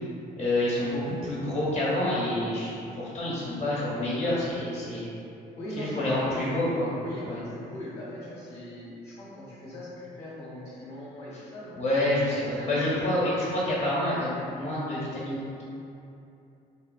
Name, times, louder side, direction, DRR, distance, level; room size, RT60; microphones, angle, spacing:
voice 1, 0.4-5.1 5.8-6.9 7.2-7.4 11.8-15.6, left 1 dB, 35° left, -8 dB, 1.1 m, -28 dB
voice 2, 5.6-6.6 7.0-11.8 12.3-13.2, left 1 dB, 65° left, -10 dB, 0.9 m, -39 dB
3.5 x 2.4 x 2.2 m, 2.7 s
supercardioid pair, 55°, 19 cm